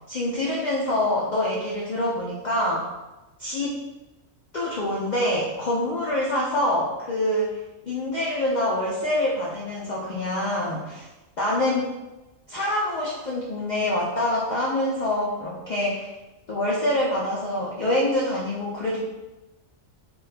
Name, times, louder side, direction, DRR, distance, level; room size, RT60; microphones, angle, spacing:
voice 1, 0.1-2.8 3.4-3.7 4.5-7.6 7.9-11.1 11.4-11.9 12.5-16.1 16.5-19.0, left 1 dB, 75° left, -4 dB, 0.4 m, -25 dB
3.2 x 2.2 x 3.3 m, 1.0 s
omnidirectional pair, 1.4 m